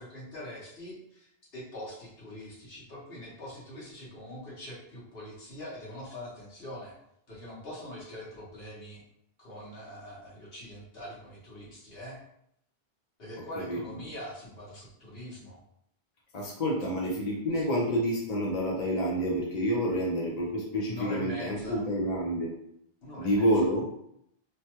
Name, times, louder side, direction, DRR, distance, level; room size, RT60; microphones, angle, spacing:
voice 1, 0.0-6.9 7.3-9.0 9.4-12.2 13.2-15.6 20.9-21.8 23.0-23.5, left 1 dB, 65° left, -6 dB, 1.3 m, -43 dB
voice 2, 16.3-22.5 23.2-23.9, equal, 45° left, -4 dB, 0.7 m, -28 dB
3.1 x 2.2 x 2.9 m, 0.75 s
omnidirectional pair, 1.1 m